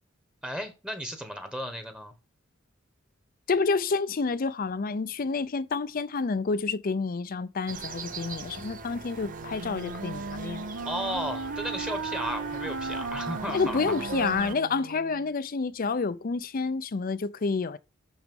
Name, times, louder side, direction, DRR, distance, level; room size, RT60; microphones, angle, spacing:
voice 1, 0.4-2.1 10.8-13.9, equal, 5° right, 1.1 m, -34 dB
voice 2, 3.5-10.6 13.5-17.8, left 4 dB, 45° left, 0.5 m, -29 dB
sound 1, 7.7-14.5, right 3 dB, 45° right, 0.8 m, -40 dB
Wind instrument woodwind instrument, 9.2-15.3, right 4 dB, 70° right, 0.7 m, -36 dB
6.4 x 5.9 x 5.3 m
head